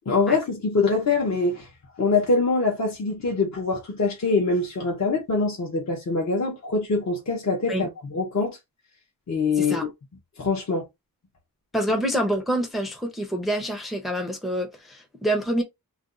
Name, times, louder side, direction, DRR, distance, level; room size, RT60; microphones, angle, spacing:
voice 1, 0.1-1.7 2.0-8.6 9.3-9.8 10.4-10.9, left 3 dB, 45° left, 0.8 m, -24 dB
voice 2, 9.6-9.9 11.7-15.6, equal, ahead, 0.6 m, -26 dB
2.5 x 2.2 x 3.7 m
wide cardioid pair, 170°, 38 cm